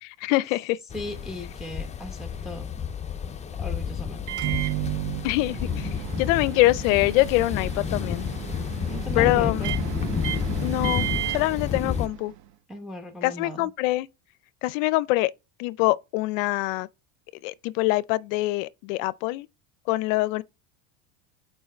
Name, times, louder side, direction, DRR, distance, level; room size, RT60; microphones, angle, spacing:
voice 1, 0.0-0.8 5.2-5.9 6.2-8.3 9.2-9.7 10.6-12.3 13.2-14.1 14.6-15.3 15.6-16.9 17.4-19.5 19.9-20.4, left 19 dB, 70° left, 0.5 m, -24 dB
sound 1, 0.9-12.1, left 7 dB, 15° left, 0.5 m, -31 dB
voice 2, 0.9-2.7 3.6-4.4 8.9-9.7 12.7-13.7, equal, ahead, 0.9 m, -37 dB
Microwave oven, 4.2-12.4, right 14 dB, 45° right, 0.5 m, -33 dB
5.5 x 4.5 x 4.3 m
supercardioid pair, 110°, 41 cm